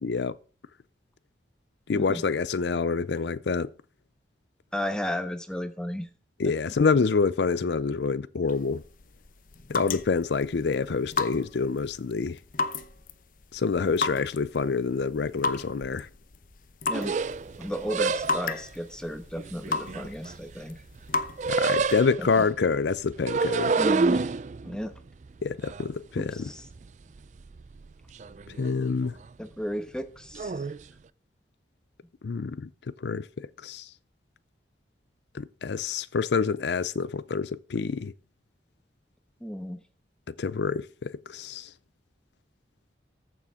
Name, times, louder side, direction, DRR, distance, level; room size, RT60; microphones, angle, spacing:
voice 1, 0.0-0.4 1.9-3.7 6.4-8.8 9.7-12.4 13.5-16.1 21.5-23.7 25.4-26.5 28.6-29.1 32.2-32.7 33.0-33.9 35.3-38.1 40.3-41.7, left 4 dB, 70° left, 0.5 m, -27 dB
voice 2, 4.7-6.1 6.4-6.5 16.9-17.1 17.6-20.8 22.2-22.4 23.7-24.3 24.6-24.9 26.2-26.7 29.4-30.6 39.4-39.8, equal, 5° left, 1.1 m, -34 dB
sound 1, 8.5-22.0, left 4 dB, 45° left, 0.8 m, -35 dB
sound 2, 16.9-18.6 19.4-20.7 21.0-22.4 23.1-26.9 27.2-27.9 28.1-28.7 29.0-29.3 30.3-30.8, right 4 dB, 40° right, 0.4 m, -29 dB
14.5 x 7.0 x 3.7 m
head